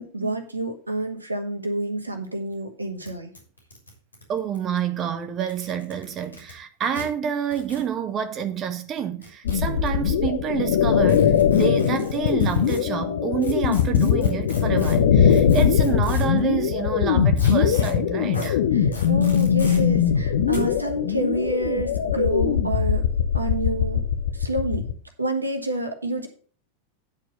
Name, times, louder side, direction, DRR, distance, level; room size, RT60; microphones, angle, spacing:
voice 1, 0.0-3.3 18.7-23.1 23.3-24.0 24.3-24.9 25.2-26.3, right 1 dB, 80° right, 1.4 m, -28 dB
sound 1, 2.2-2.3 2.5-2.6 3.0-3.1 3.3-4.8 5.4-6.5 6.9-7.1 7.5-7.9 9.0-9.9 11.1-12.8 13.4-16.4 17.4-17.9 18.3-18.5 18.9-19.8 20.5-20.6, left 1 dB, 80° left, 3.5 m, -39 dB
voice 2, 4.3-18.6, right 8 dB, 30° right, 0.7 m, -28 dB
sound 2, 9.4-24.9, left 8 dB, 60° left, 0.8 m, -21 dB
9.6 x 4.5 x 6.5 m
figure-of-eight pair, 90°, 0 cm